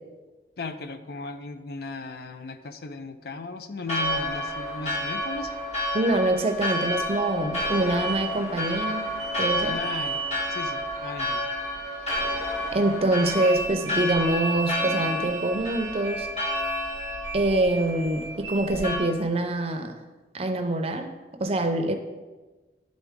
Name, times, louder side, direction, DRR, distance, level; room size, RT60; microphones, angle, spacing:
voice 1, 0.6-5.5 9.7-10.2 10.5-11.5, left 3 dB, 60° left, 9 dB, 0.5 m, -36 dB
Church bell, 3.9-19.0, left 1 dB, 40° left, 1.5 m, -30 dB
voice 2, 5.9-9.1 9.4-9.8 12.7-16.3 17.3-20.0 20.3-21.1 21.4-21.9, right 2 dB, 35° right, 6 dB, 0.6 m, -25 dB
sound 1, 7.8-18.7, right 4 dB, 75° right, 0.6 m, -37 dB
11.0 x 3.8 x 3.6 m, 1.2 s
head